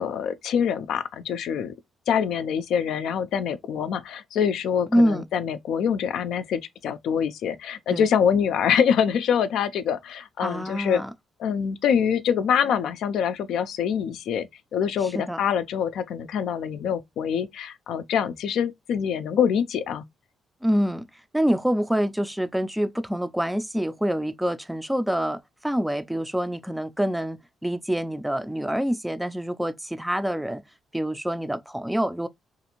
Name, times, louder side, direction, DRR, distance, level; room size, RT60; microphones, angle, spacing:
voice 1, 0.0-1.7 2.1-11.0 11.4-20.0, left 8 dB, 80° left, 0.3 m, -25 dB
voice 2, 4.9-5.2 7.9-8.1 10.4-11.1 15.1-15.4 20.6-21.1 21.3-30.6 30.9-32.3, equal, 5° right, 0.3 m, -26 dB
2.5 x 2.4 x 2.8 m
cardioid pair, 90°, 0 cm